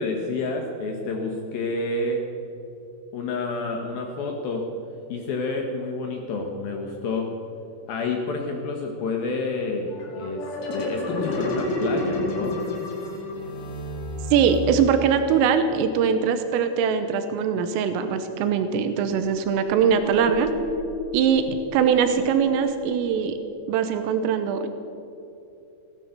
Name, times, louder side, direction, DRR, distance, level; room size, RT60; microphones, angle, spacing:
voice 1, 0.0-2.2 3.1-4.6 5.1-7.3 7.9-10.4 10.7-12.6, left 3 dB, 70° left, 2 dB, 2.3 m, -29 dB
sound 1, 9.9-15.3, left 1 dB, 90° left, 5.4 m, -30 dB
voice 2, 14.3-20.5 21.1-23.4 23.7-24.7, right 7 dB, 85° right, 8 dB, 3.5 m, -22 dB
sound 2, 18.9-23.3, left 3 dB, 60° right, 1.8 m, -36 dB
16.5 x 12.5 x 6.7 m, 2.8 s
omnidirectional pair, 5.7 m